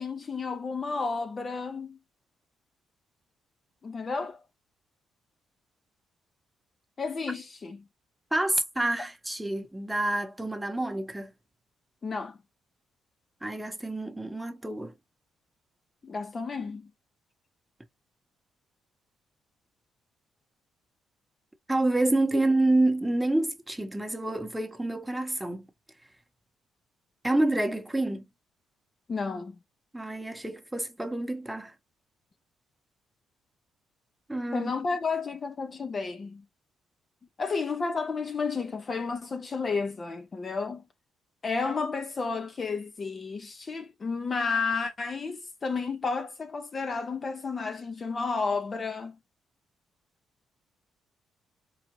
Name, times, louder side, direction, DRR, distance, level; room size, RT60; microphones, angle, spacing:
voice 1, 0.0-2.0 3.8-4.4 7.0-7.8 12.0-12.4 16.0-16.9 22.3-22.4 29.1-29.6 34.5-36.4 37.4-40.8 41.4-49.2, left 4 dB, 35° left, 0.6 m, -32 dB
voice 2, 8.3-11.3 13.4-14.9 21.7-25.7 27.2-28.2 29.9-31.7 34.3-34.7, right 2 dB, 5° right, 0.9 m, -28 dB
4.7 x 2.4 x 2.9 m
cardioid pair, 90°, 0 cm